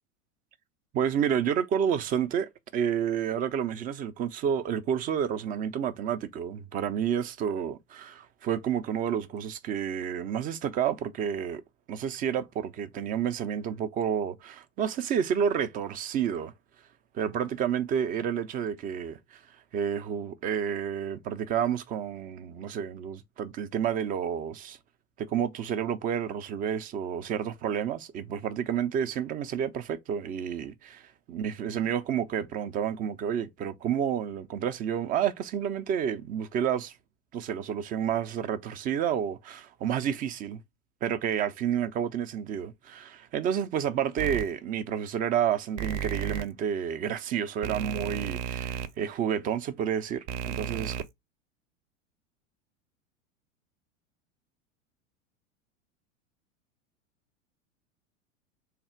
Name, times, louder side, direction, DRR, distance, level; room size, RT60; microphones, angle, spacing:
voice 1, 0.9-11.6 11.9-16.5 17.1-19.4 19.7-24.8 25.2-36.9 37.3-40.6 41.0-51.0, right 8 dB, 25° right, 0.4 m, -30 dB
sound 1, 44.2-44.4 45.8-46.4 47.6-48.9 50.3-51.0, right 8 dB, 60° right, 0.6 m, -33 dB
3.4 x 2.5 x 4.3 m
hypercardioid pair, 100°, 40 cm